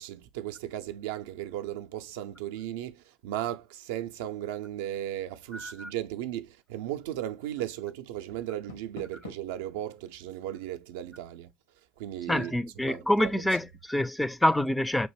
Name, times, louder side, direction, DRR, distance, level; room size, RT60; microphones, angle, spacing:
voice 1, 0.0-11.5 12.0-12.6 12.9-13.3, right 12 dB, 65° right, 0.4 m, -36 dB
voice 2, 5.5-5.9 12.3-15.1, left 1 dB, 5° left, 0.4 m, -27 dB
Door, 8.4-9.6, left 3 dB, 80° left, 0.8 m, -47 dB
5.9 x 2.5 x 3.1 m
figure-of-eight pair, 60°, 0 cm